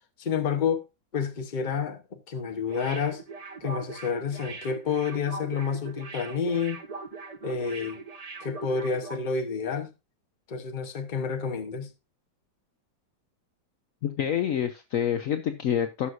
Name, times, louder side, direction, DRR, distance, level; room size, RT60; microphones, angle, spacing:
voice 1, 0.2-0.8 1.1-3.2 3.6-6.8 7.4-8.0 8.4-9.9 10.5-11.9, left 6 dB, 40° left, 0.7 m, -29 dB
sound 1, 2.7-9.3 9.6-9.7, right 3 dB, 50° right, 0.4 m, -40 dB
voice 2, 14.0-16.1, left 9 dB, 75° left, 0.7 m, -27 dB
15.0 x 6.3 x 2.5 m
omnidirectional pair, 2.1 m